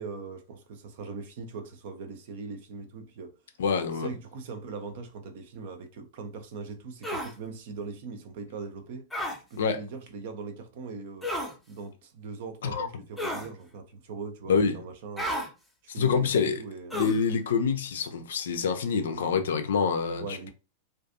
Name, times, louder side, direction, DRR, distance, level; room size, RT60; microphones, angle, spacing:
voice 1, 0.0-3.3 3.9-9.1 9.5-11.3 11.7-15.5 15.8-17.1 20.2-20.5, right 4 dB, 55° right, 0.5 m, -40 dB
voice 2, 3.6-4.1 9.6-9.8 12.6-12.9 14.5-14.7 16.0-16.6 16.9-20.2, left 5 dB, 60° left, 0.4 m, -26 dB
sound 1, 7.0-7.3 9.1-9.4 11.2-11.5 13.2-13.5 15.2-15.5 16.9-17.2, equal, ahead, 0.7 m, -31 dB
2.4 x 2.4 x 2.5 m
figure-of-eight pair, 90°, 0 cm